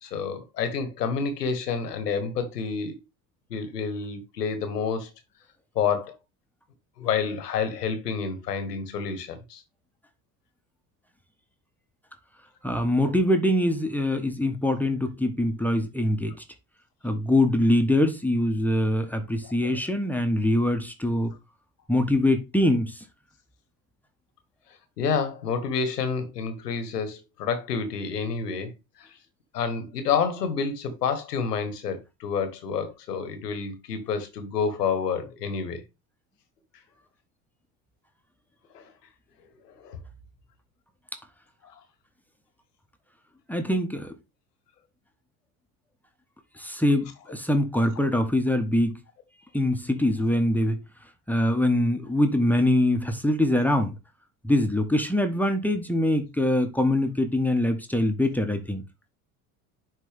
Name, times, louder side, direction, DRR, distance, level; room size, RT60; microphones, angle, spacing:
voice 1, 0.0-2.9 3.5-5.1 5.7-6.2 7.0-9.6 19.6-19.7 25.0-28.7 29.0-29.1 29.5-35.8 38.7-38.9 39.6-40.0, left 6 dB, 90° left, 1.6 m, -29 dB
voice 2, 12.6-16.4 17.0-21.3 21.9-23.0 43.5-44.1 46.6-49.0 49.5-50.8 51.3-54.0 54.4-58.8, left 1 dB, 5° left, 1.4 m, -23 dB
11.0 x 4.2 x 3.6 m
hypercardioid pair, 70°, 46 cm